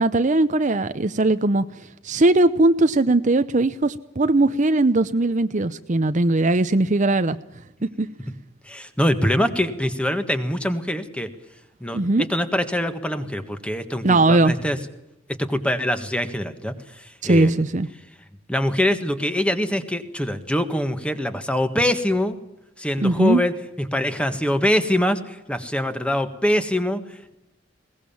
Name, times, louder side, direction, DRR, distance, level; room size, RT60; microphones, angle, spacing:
voice 1, 0.0-1.6 2.0-7.4 8.0-8.1 11.9-12.2 14.0-14.5 17.2-17.9 23.0-23.4, right 2 dB, 40° right, 11 dB, 0.7 m, -19 dB
voice 2, 8.6-11.3 11.8-14.8 15.3-17.6 18.5-22.4 22.8-27.3, left 1 dB, 5° left, 9 dB, 1.6 m, -24 dB
21.5 x 19.0 x 7.1 m, 0.89 s
head